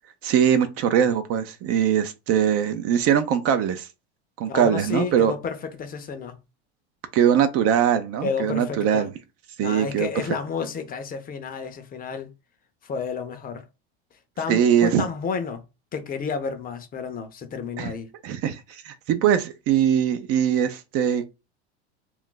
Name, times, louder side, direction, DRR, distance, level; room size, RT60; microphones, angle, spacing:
voice 1, 0.2-3.9 4.4-5.3 7.1-9.1 9.6-10.1 14.5-15.0 17.8-17.9 18.2-21.3, right 9 dB, 45° right, 0.5 m, -21 dB
voice 2, 4.5-6.4 8.2-9.1 9.6-12.3 12.8-13.7 14.4-15.6 15.9-18.1, left 5 dB, 25° left, 0.6 m, -31 dB
2.4 x 2.1 x 3.8 m
supercardioid pair, 105°, 32 cm